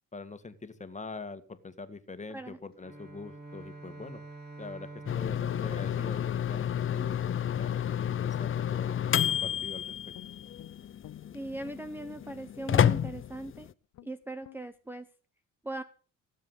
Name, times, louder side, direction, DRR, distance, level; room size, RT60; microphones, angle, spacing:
voice 1, 0.1-4.2 4.6-10.0, left 3 dB, 25° left, 10 dB, 1.9 m, -43 dB
voice 2, 2.3-2.6 11.3-13.7 14.0-15.1 15.6-15.8, right 1 dB, 5° right, 11 dB, 0.9 m, -39 dB
Bowed string instrument, 2.7-7.1, right 3 dB, 35° right, 6.1 m, -48 dB
sound 1, 5.1-13.7, left 9 dB, 45° left, 0.7 m, -30 dB
Guitar, 9.5-9.8 10.1-11.9 12.3-12.5 12.9-13.2 13.5-13.7 13.9-14.1 14.4-14.6, left 12 dB, 75° left, 0.9 m, -50 dB
17.0 x 7.5 x 8.0 m, 0.40 s
cardioid pair, 90°, 30 cm